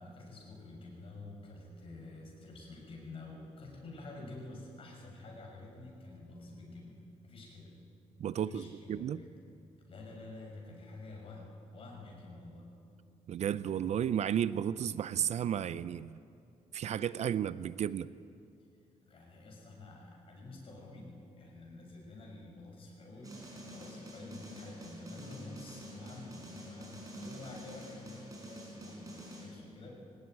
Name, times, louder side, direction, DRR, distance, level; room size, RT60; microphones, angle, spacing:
voice 1, 0.0-7.8 8.3-9.3 9.9-12.7 19.0-23.4 23.7-30.0, left 2 dB, 45° left, -1 dB, 6.4 m, -49 dB
voice 2, 8.2-9.2 13.3-16.2 16.7-18.1, right 9 dB, 60° right, 16 dB, 0.5 m, -33 dB
sound 1, 23.2-29.5, equal, 25° right, 5.8 m, -48 dB
22.0 x 18.0 x 9.6 m, 2.5 s
cardioid pair, 145°, 13 cm